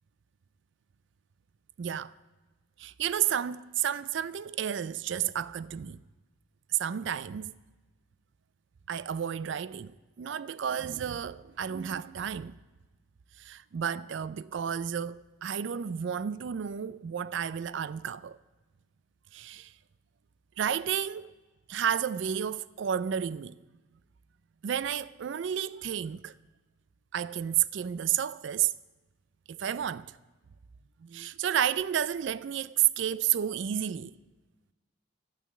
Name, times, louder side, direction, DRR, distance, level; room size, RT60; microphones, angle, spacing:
voice 1, 1.8-2.1 2.8-6.0 6.8-7.5 8.9-12.5 13.4-18.4 19.3-19.7 20.6-21.3 21.7-23.6 24.6-26.3 27.1-28.7 29.5-30.1 31.0-34.1, right 9 dB, 60° right, 0.3 m, -31 dB
12.0 x 8.5 x 8.6 m
head